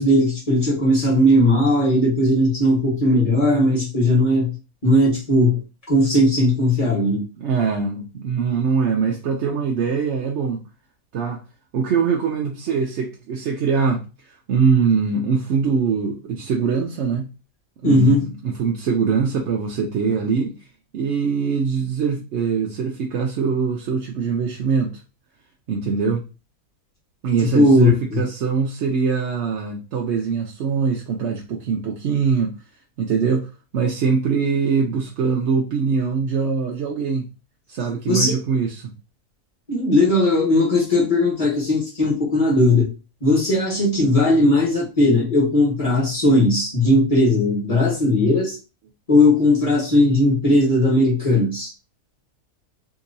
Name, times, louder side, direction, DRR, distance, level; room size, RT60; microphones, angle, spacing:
voice 1, 0.0-4.5 4.8-7.2 17.8-18.2 27.5-28.2 38.1-38.4 39.7-42.9 43.2-48.6 49.1-51.7, left 1 dB, 25° left, 1.4 m, -18 dB
voice 2, 7.4-10.6 11.1-11.4 11.7-17.3 17.8-20.6 20.9-24.9 25.7-26.2 27.2-32.5 33.0-37.3 37.7-38.9, right 5 dB, 65° right, 0.7 m, -22 dB
3.7 x 2.8 x 2.6 m
omnidirectional pair, 1.6 m